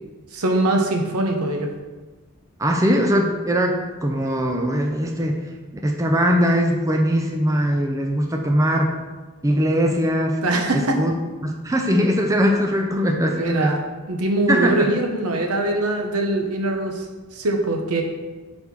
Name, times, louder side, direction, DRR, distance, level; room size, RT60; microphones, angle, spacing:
voice 1, 0.3-1.7 10.4-11.0 13.3-13.8 14.1-17.1 17.3-18.0, right 2 dB, 85° right, 3 dB, 0.9 m, -22 dB
voice 2, 2.6-5.4 5.8-8.9 9.4-10.4 10.7-11.1 11.4-13.8 14.5-14.9, equal, 15° right, 2 dB, 0.4 m, -21 dB
4.6 x 4.3 x 5.3 m, 1.3 s
head